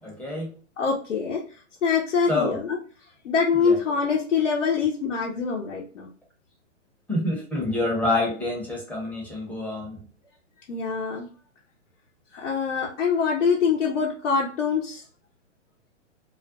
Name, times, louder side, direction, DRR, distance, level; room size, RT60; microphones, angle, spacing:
voice 1, 0.0-0.5 2.3-2.6 3.6-3.8 7.1-10.0, left 2 dB, 5° left, -3 dB, 0.7 m, -27 dB
voice 2, 0.8-1.4 1.8-2.8 3.2-6.1 10.7-11.3 12.3-15.0, left 5 dB, 80° left, -3 dB, 0.7 m, -24 dB
2.5 x 2.1 x 2.4 m, 0.40 s
hypercardioid pair, 115°, 37 cm